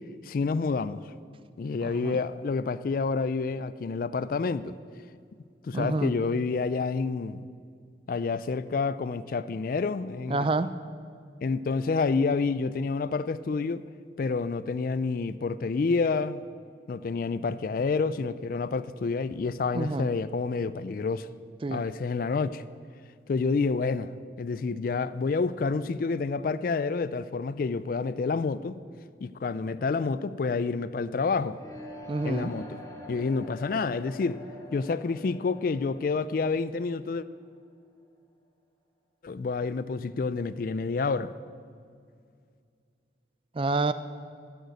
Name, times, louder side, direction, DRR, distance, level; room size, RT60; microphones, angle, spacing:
voice 1, 0.2-1.0 1.6-4.7 5.6-7.4 8.1-10.5 11.4-13.8 14.2-16.4 16.9-21.3 21.7-22.6 23.3-24.1 24.4-28.8 29.2-31.6 32.2-32.8 33.1-34.4 34.7-37.2 39.2-41.3, left 4 dB, 50° left, 15 dB, 0.3 m, -28 dB
voice 2, 1.8-2.2 5.7-6.1 10.3-10.7 19.7-20.1 21.6-21.8 32.1-32.5 43.5-43.9, right 3 dB, 30° right, 13 dB, 0.4 m, -28 dB
sound 1, 31.5-37.4, left 1 dB, 20° left, 1.1 m, -45 dB
13.0 x 6.7 x 7.8 m, 2.2 s
head